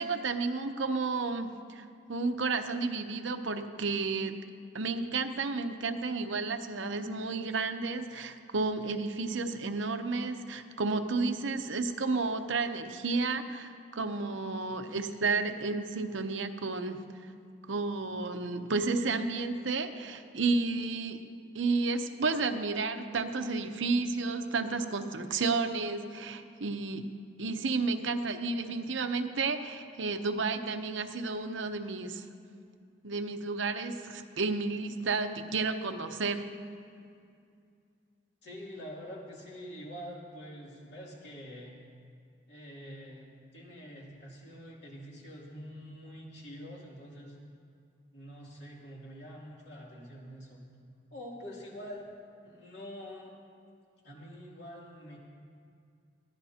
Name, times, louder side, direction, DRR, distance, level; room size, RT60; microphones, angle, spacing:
voice 1, 0.0-4.4 4.7-17.0 17.7-21.2 21.5-27.1 27.4-32.2 33.0-36.4, right 3 dB, 80° right, 7 dB, 0.8 m, -32 dB
voice 2, 38.4-41.8 42.5-47.4 48.1-50.6 51.1-52.1 52.4-53.3 54.0-55.2, equal, 60° left, -4 dB, 2.8 m, -46 dB
21.5 x 15.5 x 2.9 m, 2.4 s
head